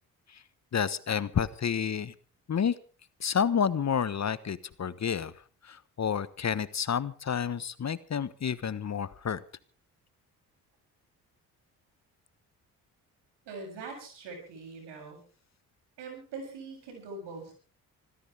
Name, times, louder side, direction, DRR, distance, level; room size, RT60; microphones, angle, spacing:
voice 1, 0.7-2.1 2.5-2.8 3.2-5.3 5.6-9.4, left 7 dB, 40° left, 17 dB, 1.2 m, -30 dB
voice 2, 13.5-15.2 16.0-17.5, right 4 dB, 75° right, 3 dB, 7.7 m, -42 dB
26.0 x 15.0 x 3.5 m, 0.38 s
hypercardioid pair, 45°, 41 cm